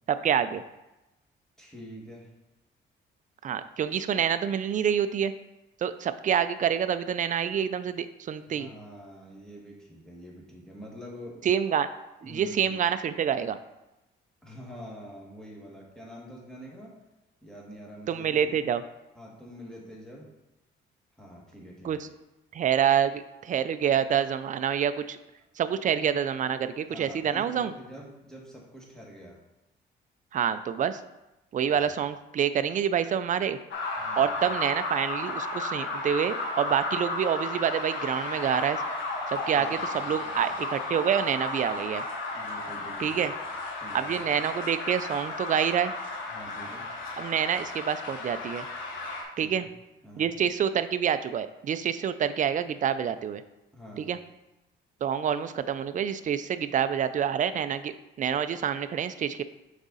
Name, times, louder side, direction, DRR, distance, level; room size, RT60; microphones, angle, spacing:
voice 1, 0.1-0.6 3.4-5.3 5.8-8.7 11.4-11.9 12.2-13.6 18.1-18.8 21.8-22.1 22.5-25.2 25.6-27.7 30.3-31.0 31.5-33.6 34.2-38.8 39.3-42.0 43.0-43.3 43.9-45.9 47.2-48.7 49.4-49.7 50.2-53.4 54.0-54.2 55.0-59.4, right 8 dB, 40° right, 12 dB, 0.4 m, -27 dB
voice 2, 1.6-2.3 8.5-11.5 12.2-12.8 14.4-17.0 17.4-18.6 19.1-20.3 21.2-22.0 26.9-29.4 34.0-34.4 39.5-40.5 42.3-43.5 43.8-44.2 46.3-47.0 49.4-49.7 50.0-50.4 53.7-54.1, equal, 5° left, -3 dB, 1.9 m, -46 dB
sound 1, 33.7-49.2, left 2 dB, 80° left, 1.1 m, -34 dB
6.0 x 4.1 x 4.0 m, 0.99 s
cardioid pair, 90°, 20 cm